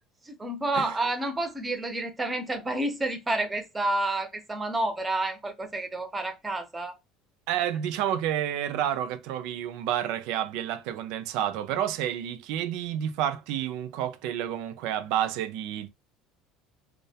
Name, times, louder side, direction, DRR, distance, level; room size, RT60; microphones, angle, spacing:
voice 1, 0.3-6.9, right 2 dB, 15° right, 0.6 m, -29 dB
voice 2, 7.5-15.9, right 10 dB, 70° right, 0.4 m, -30 dB
2.2 x 2.1 x 2.7 m
cardioid pair, 140°, 0 cm